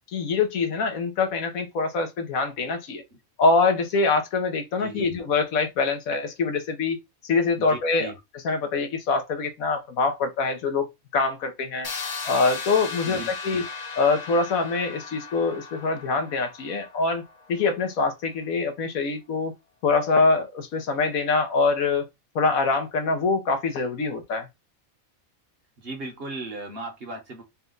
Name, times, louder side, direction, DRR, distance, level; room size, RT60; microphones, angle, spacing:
voice 1, 0.1-3.0 3.4-7.0 7.2-8.1 8.4-11.9 12.3-13.6 14.0-17.2 17.5-19.5 19.8-22.1 22.3-24.5, left 4 dB, 80° left, 1.3 m, -24 dB
voice 2, 4.8-5.1 7.6-8.2 13.0-13.6 25.8-27.4, right 2 dB, 45° right, 1.2 m, -37 dB
sound 1, 11.8-17.6, left 4 dB, 45° left, 0.5 m, -37 dB
4.2 x 2.3 x 3.8 m
omnidirectional pair, 1.4 m